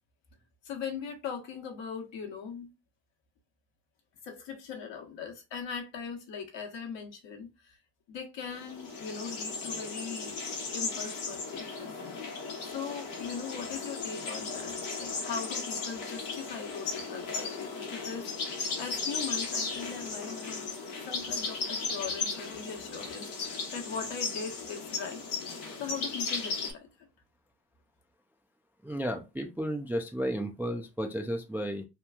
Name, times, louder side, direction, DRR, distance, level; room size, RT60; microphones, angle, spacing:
voice 1, 0.6-2.7 4.2-7.8 8.1-10.3 10.7-11.9 12.3-20.7 21.1-25.2 25.8-26.9, left 6 dB, 60° left, 1.0 m, -40 dB
sound 1, 8.5-26.7, left 4 dB, 85° left, 1.0 m, -36 dB
voice 2, 28.8-31.8, equal, 5° right, 0.3 m, -33 dB
3.0 x 2.3 x 2.2 m
hypercardioid pair, 55°, 50 cm